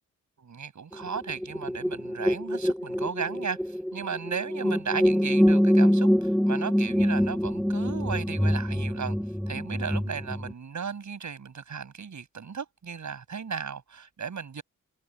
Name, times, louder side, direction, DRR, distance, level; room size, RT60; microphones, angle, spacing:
voice 1, 0.4-9.2 9.5-14.6, right 6 dB, 60° right, 6.4 m, -35 dB
sound 1, 0.9-10.5, equal, ahead, 0.4 m, -25 dB
supercardioid pair, 45°, 32 cm